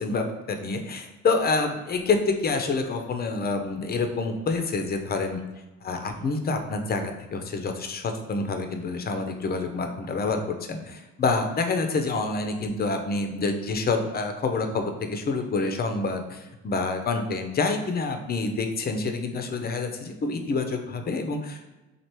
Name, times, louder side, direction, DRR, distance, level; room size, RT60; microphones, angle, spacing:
voice 1, 0.0-5.4 5.8-21.7, left 3 dB, 30° left, 5 dB, 0.6 m, -27 dB
3.2 x 2.5 x 4.4 m, 1.1 s
supercardioid pair, 80°, 34 cm